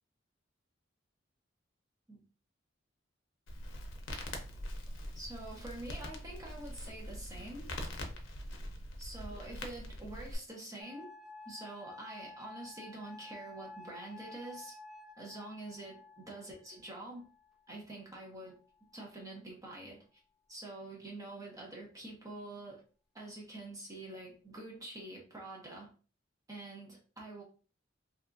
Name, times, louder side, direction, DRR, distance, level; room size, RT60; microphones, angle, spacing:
Crackle, 3.5-10.4, left 1 dB, 90° left, 0.6 m, -43 dB
voice 1, 5.1-7.7 9.0-11.1 11.5-14.7 15.2-17.3 17.7-18.6 18.9-20.2 20.5-22.8 23.1-25.9 26.5-27.4, right 2 dB, 20° right, -2 dB, 0.7 m, -46 dB
sound 1, 10.8-17.7 18.6-19.2, left 2 dB, 5° right, 0.3 m, -52 dB
2.8 x 2.3 x 2.5 m, 0.38 s
head